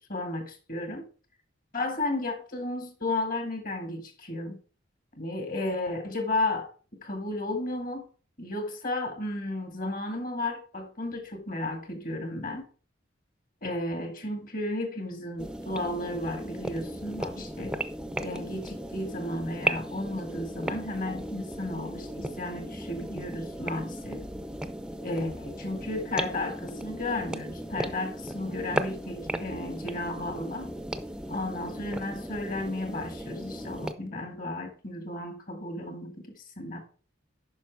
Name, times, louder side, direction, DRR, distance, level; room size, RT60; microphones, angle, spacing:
voice 1, 0.1-1.1 1.7-4.6 5.2-8.1 8.4-12.6 13.6-17.8 18.2-24.2 25.0-30.7 31.3-36.8, left 2 dB, 45° left, 5 dB, 2.1 m, -33 dB
sound 1, 15.4-33.9, right 1 dB, 5° right, 0.5 m, -36 dB
9.5 x 5.8 x 4.7 m, 0.39 s
head